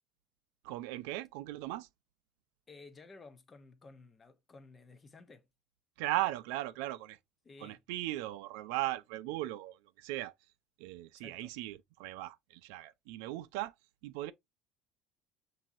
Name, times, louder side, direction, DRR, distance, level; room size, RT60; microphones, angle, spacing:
voice 1, 0.6-1.9 6.0-7.2 7.6-10.3 10.8-13.7 14.0-14.3, right 16 dB, 85° right, 0.3 m, -38 dB
voice 2, 2.7-5.5 7.4-7.8 11.1-11.5, left 3 dB, 25° left, 0.7 m, -54 dB
5.9 x 2.7 x 2.5 m
supercardioid pair, 115°, 0 cm